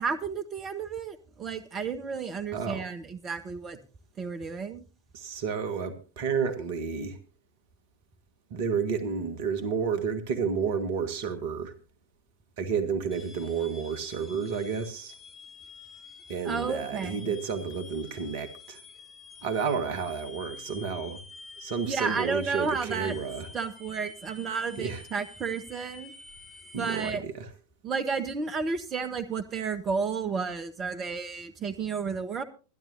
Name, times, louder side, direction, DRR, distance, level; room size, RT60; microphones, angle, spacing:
voice 1, 0.0-3.8 4.2-4.8 16.4-17.3 21.8-23.1 23.5-26.1 26.8-27.2 27.8-32.4, right 5 dB, 25° right, 1.6 m, -32 dB
voice 2, 2.5-2.8 5.1-7.2 8.5-11.7 12.6-15.1 16.3-18.8 19.4-21.2 21.6-23.5 24.8-25.0 26.7-27.5, right 6 dB, 50° right, 1.7 m, -31 dB
sound 1, 13.1-27.1, left 3 dB, 20° left, 3.2 m, -48 dB
25.5 x 11.0 x 2.7 m
figure-of-eight pair, 90°, 0 cm